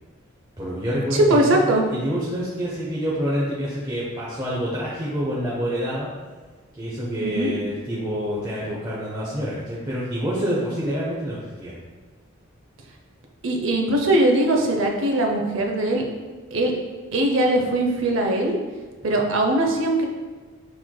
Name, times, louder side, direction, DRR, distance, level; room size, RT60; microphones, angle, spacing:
voice 1, 0.6-6.1 6.7-11.8, equal, 20° right, -7 dB, 0.6 m, -27 dB
voice 2, 1.1-1.8 7.2-7.5 13.4-16.0 16.5-16.7 17.1-18.6 19.0-20.1, right 1 dB, 70° right, 2 dB, 0.6 m, -20 dB
5.9 x 3.1 x 2.2 m, 1.4 s
head